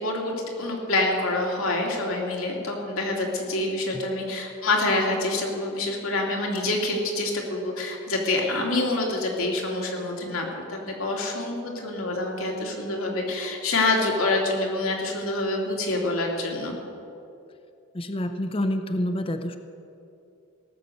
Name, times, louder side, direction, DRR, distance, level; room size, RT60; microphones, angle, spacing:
voice 1, 0.0-16.7, left 2 dB, 85° left, 0 dB, 2.6 m, -26 dB
voice 2, 17.9-19.6, left 1 dB, 25° left, 8 dB, 0.6 m, -28 dB
18.0 x 6.9 x 7.7 m, 2.7 s
head